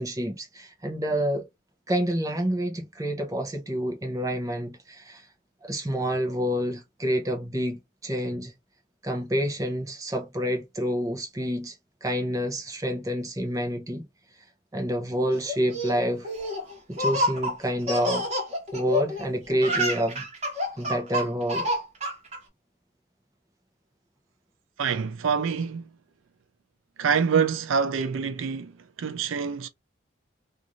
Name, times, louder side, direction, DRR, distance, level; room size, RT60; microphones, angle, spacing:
voice 1, 0.0-1.4 1.9-5.3 5.6-8.5 9.0-11.8 12.0-14.0 14.7-16.3 16.9-18.2 18.7-20.2 20.8-21.7, equal, 15° right, 0.6 m, -28 dB
Laughter, 15.5-19.3 19.5-22.4, equal, 35° right, 1.0 m, -28 dB
voice 2, 24.8-25.9 27.0-29.7, right 6 dB, 80° right, 0.4 m, -26 dB
2.5 x 2.5 x 3.0 m
head